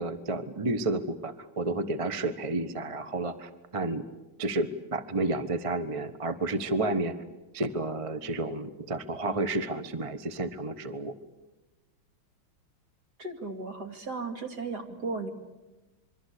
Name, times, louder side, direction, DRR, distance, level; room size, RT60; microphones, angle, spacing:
voice 1, 0.0-4.0 4.4-7.1 7.5-11.1, right 2 dB, 25° right, 11 dB, 0.8 m, -31 dB
voice 2, 13.2-15.3, right 3 dB, 50° right, 6 dB, 3.0 m, -35 dB
26.5 x 23.5 x 8.4 m, 1.1 s
omnidirectional pair, 2.3 m